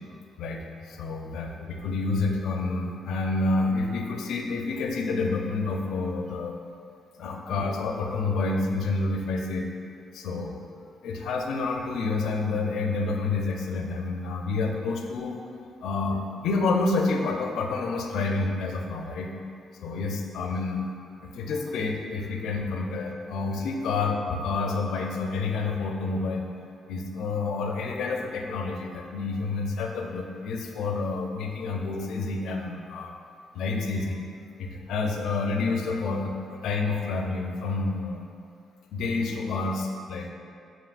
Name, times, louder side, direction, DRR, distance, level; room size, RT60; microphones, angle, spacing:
voice 1, 0.4-6.6 7.2-9.7 10.1-10.6 11.0-15.4 15.8-19.3 19.8-20.8 21.2-26.4 26.9-33.1 33.5-34.2 34.6-36.3 36.6-38.2 38.9-40.3, left 3 dB, 80° left, 2 dB, 0.4 m, -29 dB
7.2 x 3.0 x 2.4 m, 2.4 s
cardioid pair, 90°, 0 cm